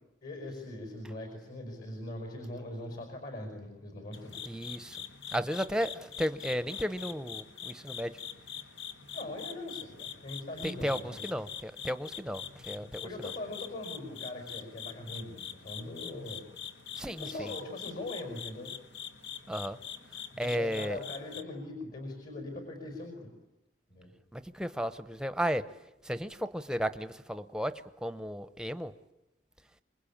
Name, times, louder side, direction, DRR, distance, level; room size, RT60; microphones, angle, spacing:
voice 1, 0.2-4.4 9.1-11.2 13.0-16.4 17.1-18.7 20.4-23.3 23.9-24.1, left 1 dB, 55° left, 4 dB, 5.4 m, -41 dB
sound 1, 4.1-21.4, left 8 dB, 85° left, 1.8 m, -44 dB
voice 2, 4.4-5.0 5.3-8.2 10.6-13.3 17.0-17.5 19.5-19.8 20.4-21.0 24.3-25.6 26.0-28.9, equal, 5° right, 11 dB, 0.9 m, -34 dB
27.0 x 22.0 x 8.7 m, 0.93 s
head